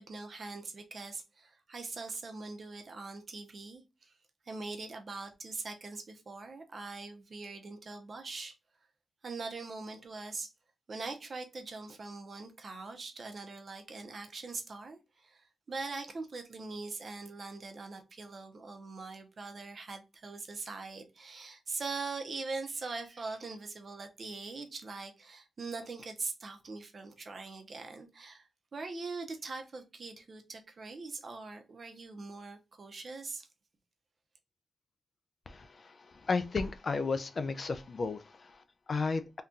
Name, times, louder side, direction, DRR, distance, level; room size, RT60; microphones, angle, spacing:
voice 1, 0.0-4.2 4.5-8.5 9.2-10.5 10.9-33.5, right 3 dB, 45° right, 0.6 m, -42 dB
voice 2, 35.5-39.4, left 4 dB, 40° left, 0.3 m, -34 dB
3.7 x 2.3 x 2.6 m
wide cardioid pair, 140°, 0 cm